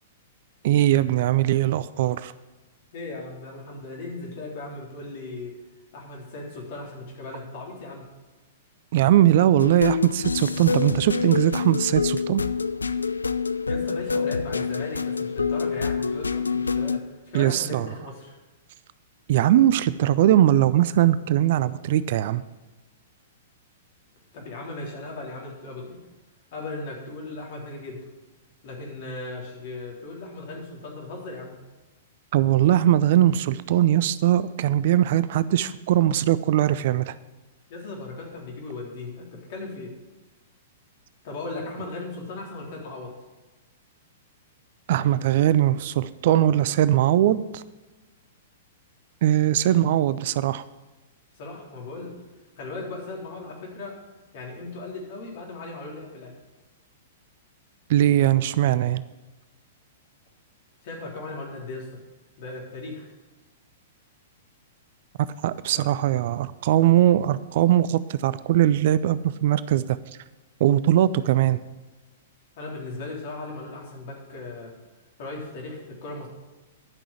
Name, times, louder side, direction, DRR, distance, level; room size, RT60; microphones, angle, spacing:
voice 1, 0.6-2.3 8.9-12.4 17.3-17.9 19.3-22.4 32.3-37.1 44.9-47.6 49.2-50.6 57.9-59.0 65.4-70.0 70.6-71.6, right 12 dB, 50° right, 17 dB, 0.4 m, -20 dB
voice 2, 2.9-5.6 5.9-8.1 13.7-18.4 24.3-26.0 26.5-28.0 28.6-31.5 37.7-39.9 41.2-43.2 49.6-49.8 51.3-52.1 52.6-54.0 54.3-56.3 60.8-62.0 62.4-63.1 65.7-65.9 72.6-74.7 75.2-76.3, left 2 dB, 50° left, -1 dB, 3.6 m, -37 dB
sound 1, 9.6-17.0, left 5 dB, 75° left, 0.4 m, -27 dB
11.5 x 6.2 x 7.9 m, 1.2 s
figure-of-eight pair, 105°, 0 cm